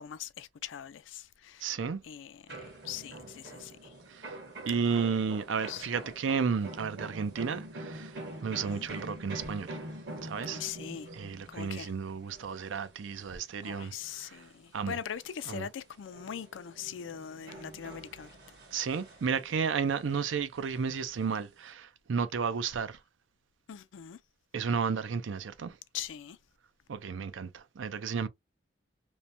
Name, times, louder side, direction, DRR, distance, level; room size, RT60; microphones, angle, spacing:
voice 1, 0.0-1.6 2.0-3.9 4.7-5.0 5.6-5.9 8.7-8.9 10.4-11.1 11.5-11.9 13.6-18.3 23.7-24.2 25.9-26.4, left 9 dB, 85° left, 0.4 m, -41 dB
voice 2, 1.6-2.0 4.1-4.4 4.7-9.8 10.2-10.6 11.1-14.4 14.7-15.0 15.5-15.7 18.7-23.0 24.5-25.8 26.9-28.3, right 6 dB, 85° right, 0.5 m, -33 dB
sound 1, 2.5-15.6 15.9-19.6 20.0-21.7, right 1 dB, 60° right, 1.2 m, -46 dB
3.0 x 2.1 x 2.6 m
head